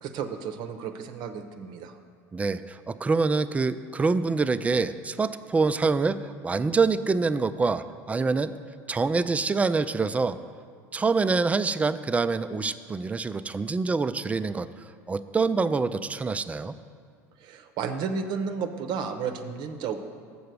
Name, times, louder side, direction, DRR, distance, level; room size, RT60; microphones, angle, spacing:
voice 1, 0.0-2.0 17.4-20.0, right 6 dB, 55° right, 7 dB, 0.7 m, -32 dB
voice 2, 2.3-8.5 8.9-10.4 10.9-14.7 15.1-16.8, right 4 dB, 15° right, 12 dB, 0.3 m, -25 dB
7.0 x 6.5 x 6.7 m, 2.2 s
hypercardioid pair, 80°, 9 cm